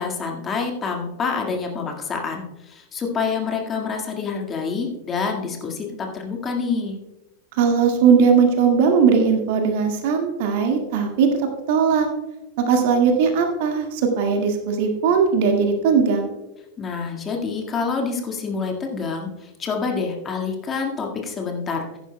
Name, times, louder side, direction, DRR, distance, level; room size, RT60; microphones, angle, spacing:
voice 1, 0.0-7.0 16.8-22.0, left 5 dB, 25° left, 1 dB, 1.8 m, -27 dB
voice 2, 7.6-11.3 11.7-12.1 12.6-16.3, right 6 dB, 50° right, 3 dB, 1.8 m, -19 dB
15.0 x 10.5 x 2.2 m, 0.98 s
figure-of-eight pair, 90°, 0 cm